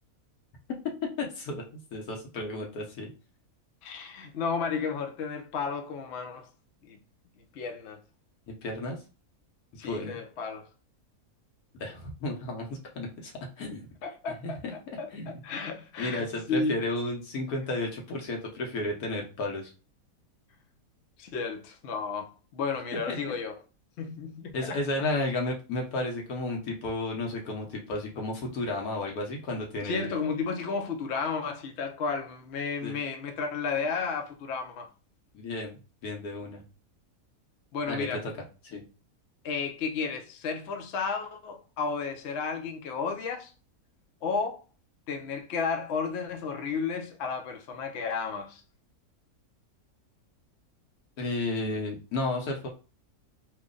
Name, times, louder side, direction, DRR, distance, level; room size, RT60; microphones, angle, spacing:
voice 1, 1.0-1.6 1.9-3.1 8.5-9.0 9.8-10.2 11.8-13.3 13.6-13.9 14.4-15.4 16.0-19.7 23.1-23.4 24.5-30.1 32.8-33.0 35.3-35.7 36.0-36.6 37.9-38.3 38.7-38.8 51.2-52.7, left 2 dB, 85° left, 1.4 m, -33 dB
voice 2, 3.8-6.5 6.8-7.0 7.5-8.0 9.8-10.7 14.0-14.6 15.0-16.8 21.2-23.5 24.0-24.8 29.8-34.9 37.7-38.3 39.4-43.5 44.2-44.6 45.1-48.6, left 5 dB, 60° left, 0.8 m, -33 dB
3.1 x 2.2 x 3.7 m
omnidirectional pair, 1.5 m